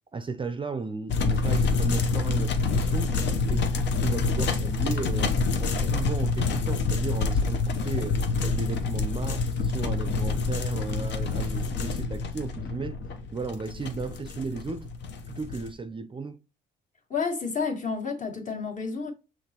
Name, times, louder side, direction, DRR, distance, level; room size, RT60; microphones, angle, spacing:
voice 1, 0.1-3.2 3.5-5.3 5.6-13.0 13.3-14.9 15.3-16.4, right 4 dB, 25° right, 0.4 m, -35 dB
sound 1, 1.1-15.7, left 4 dB, 65° left, 0.7 m, -27 dB
voice 2, 17.1-19.1, left 5 dB, 40° left, 1.5 m, -30 dB
5.8 x 3.1 x 2.8 m
cardioid pair, 90°, 20 cm